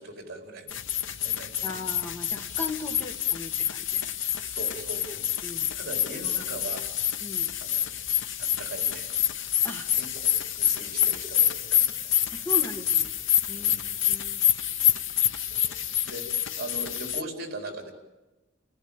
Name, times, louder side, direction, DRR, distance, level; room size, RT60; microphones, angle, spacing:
voice 1, 0.0-1.8 2.9-3.1 4.4-5.3 5.7-6.9 7.6-7.9 8.4-9.1 9.9-10.3 10.6-12.5 13.5-14.0 15.3-15.7 16.0-17.9, right 2 dB, 50° right, 3 dB, 4.7 m, -40 dB
sound 1, 0.7-17.2, left 10 dB, 70° left, 0.9 m, -27 dB
voice 2, 1.6-4.0 5.4-5.7 7.2-7.5 9.6-9.9 12.3-13.1 13.5-13.7 14.0-14.4, left 2 dB, 10° left, 3 dB, 1.9 m, -38 dB
30.0 x 18.5 x 8.9 m, 1.1 s
head